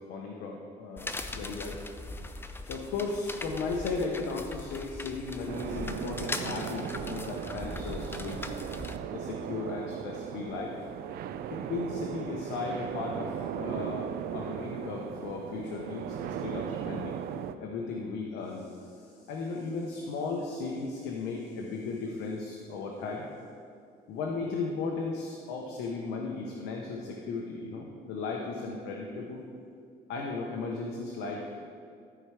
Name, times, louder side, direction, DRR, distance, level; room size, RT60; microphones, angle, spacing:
voice 1, 0.0-1.8 2.6-8.4 9.1-10.7 11.5-17.2 17.6-23.3 24.1-29.4 30.1-31.7, left 4 dB, 90° left, 0 dB, 1.0 m, -36 dB
sound 1, 1.0-9.0, left 2 dB, 15° left, 0.5 m, -40 dB
sound 2, 5.5-17.5, right 9 dB, 65° right, 0.5 m, -37 dB
13.5 x 4.7 x 4.9 m, 2.3 s
cardioid pair, 110°, 17 cm